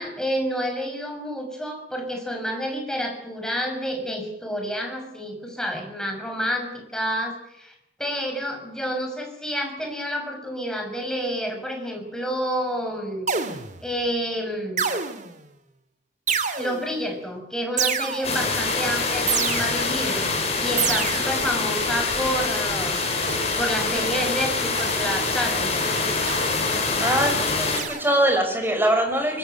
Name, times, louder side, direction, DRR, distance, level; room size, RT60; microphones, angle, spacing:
voice 1, 0.0-7.7 8.0-13.5 13.8-14.9 16.6-20.3 20.6-23.3 23.6-25.7, equal, 5° left, 3 dB, 5.9 m, -29 dB
sound 1, 13.3-13.9 14.8-15.4 16.3-17.0 17.8-18.5 19.3-20.0 20.8-21.5 23.3-23.7 24.8-25.2 26.3-26.7 27.8-28.3, right 6 dB, 45° right, 2.4 m, -28 dB
sound 2, 18.2-27.8, left 3 dB, 35° left, 6.5 m, -25 dB
voice 2, 27.0-29.4, right 1 dB, 10° right, 5 dB, 5.6 m, -22 dB
24.5 x 20.5 x 9.0 m, 0.82 s
head